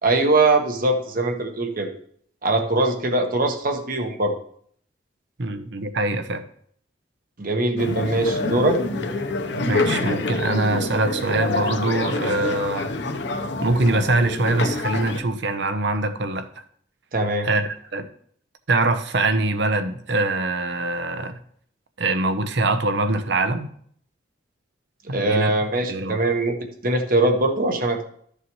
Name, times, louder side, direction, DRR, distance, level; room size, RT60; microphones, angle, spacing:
voice 1, 0.0-1.9 2.4-4.3 7.4-8.8 17.1-17.5 25.1-26.6 26.8-28.0, right 2 dB, 50° right, 1.3 m, -21 dB
voice 2, 5.4-6.4 9.6-12.9 13.6-16.5 17.4-18.1 18.7-21.4 22.0-23.7 25.1-25.5 25.9-26.2, right 2 dB, 70° right, 0.9 m, -23 dB
sound 1, 7.8-15.2, left 3 dB, 70° left, 0.9 m, -26 dB
12.5 x 6.7 x 3.1 m
head